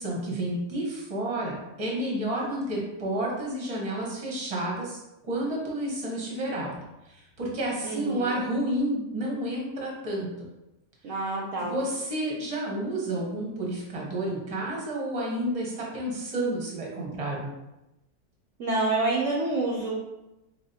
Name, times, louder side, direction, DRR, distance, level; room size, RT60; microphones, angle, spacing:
voice 1, 0.0-5.0 5.3-6.7 7.0-10.3 11.6-17.5, right 1 dB, 25° right, -3 dB, 0.9 m, -30 dB
voice 2, 7.8-8.4 11.0-11.8 18.6-19.9, right 2 dB, 60° right, -2 dB, 0.8 m, -28 dB
5.0 x 3.2 x 2.8 m, 0.94 s
omnidirectional pair, 1.9 m